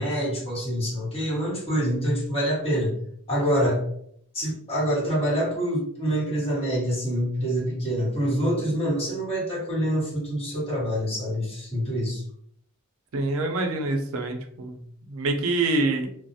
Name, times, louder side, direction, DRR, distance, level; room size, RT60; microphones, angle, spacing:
voice 1, 0.0-2.9 3.3-3.8 4.3-12.2, equal, 25° left, -8 dB, 1.3 m, -26 dB
voice 2, 13.1-14.8 15.1-16.1, right 2 dB, 65° right, 4 dB, 0.4 m, -25 dB
2.4 x 2.0 x 2.6 m, 0.66 s
head